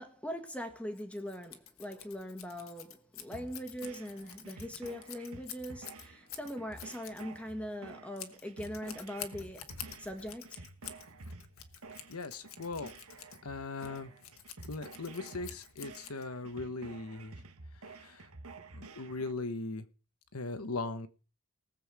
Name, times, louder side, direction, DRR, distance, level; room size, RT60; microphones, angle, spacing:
voice 1, 0.0-10.6, equal, 5° left, 1.5 m, -41 dB
Scissors, 0.9-16.6, left 10 dB, 70° left, 1.5 m, -49 dB
sound 1, 3.3-19.3, right 3 dB, 85° right, 1.5 m, -51 dB
voice 2, 12.1-12.9 13.4-14.1 14.7-17.4 17.9-18.3 18.7-19.8 20.3-21.1, left 3 dB, 90° left, 1.2 m, -39 dB
19.0 x 7.8 x 4.9 m
head